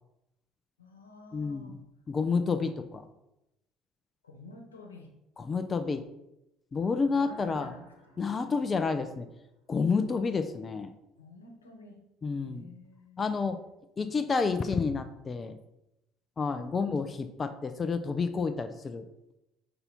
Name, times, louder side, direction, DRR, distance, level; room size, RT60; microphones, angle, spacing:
voice 1, 0.8-1.8 4.2-5.1 7.1-8.2 8.5-8.7 11.2-12.0 12.3-13.7, left 2 dB, 85° left, 2 dB, 1.0 m, -51 dB
voice 2, 1.3-1.8 2.1-3.1 5.5-6.0 6.7-7.7 8.2-9.3 9.7-10.9 12.2-12.6 13.2-13.6 14.0-15.6 16.4-19.1, left 4 dB, 30° left, 8 dB, 0.6 m, -29 dB
sound 1, 7.2-9.9, right 1 dB, 80° right, 2.3 m, -56 dB
5.6 x 5.5 x 4.1 m, 0.88 s
figure-of-eight pair, 60°, 0 cm